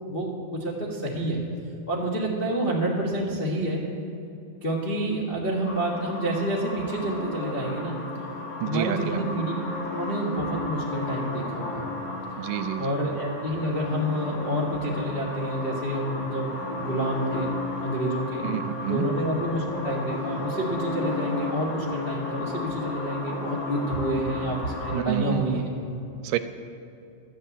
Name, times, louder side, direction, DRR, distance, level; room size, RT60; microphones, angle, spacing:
voice 1, 0.1-1.4 1.9-3.8 4.6-8.0 8.6-9.5 9.9-11.9 12.8-17.5 17.8-18.4 18.9-25.7, right 1 dB, 45° left, -2 dB, 0.6 m, -28 dB
sound 1, 5.6-25.0, left 2 dB, 65° left, 2.8 m, -33 dB
voice 2, 8.6-9.2 12.4-12.9 18.4-19.1 24.9-25.6 26.2-26.4, right 12 dB, 80° right, 11 dB, 2.0 m, -28 dB
13.0 x 7.3 x 8.4 m, 2.7 s
omnidirectional pair, 4.0 m